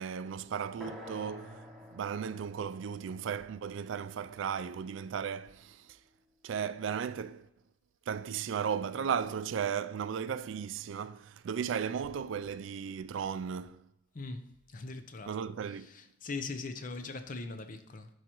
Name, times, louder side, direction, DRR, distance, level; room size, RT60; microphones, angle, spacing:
voice 1, 0.0-6.0 6.4-7.5 8.1-13.9 15.3-15.9, right 7 dB, 80° right, 0.3 m, -35 dB
sound 1, 0.8-4.7, left 1 dB, ahead, 1.1 m, -50 dB
voice 2, 14.1-14.5 14.7-15.3 15.9-18.1, left 3 dB, 45° left, 0.6 m, -40 dB
12.0 x 4.8 x 3.0 m
head